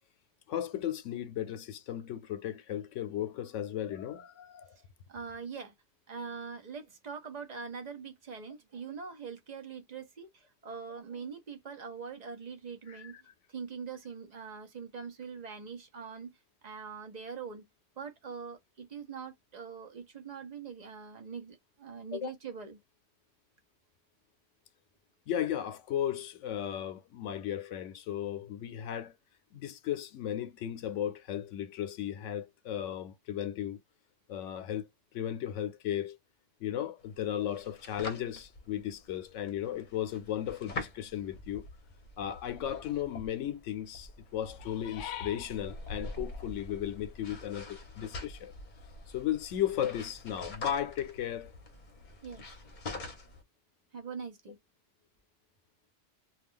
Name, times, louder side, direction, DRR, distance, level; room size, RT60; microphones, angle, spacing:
voice 1, 0.5-4.8 12.9-13.1 22.1-22.3 25.3-29.1 29.5-33.8 34.3-34.9 35.1-36.2 36.6-41.7 42.2-48.5 49.1-51.5, left 10 dB, 85° left, 0.9 m, -35 dB
voice 2, 5.1-5.7 6.1-16.3 16.6-17.6 18.0-22.8 52.2-52.5 53.9-54.6, right 6 dB, 45° right, 0.7 m, -43 dB
sound 1, 37.0-53.4, left 2 dB, 45° left, 0.8 m, -45 dB
2.4 x 2.3 x 3.5 m
omnidirectional pair, 1.2 m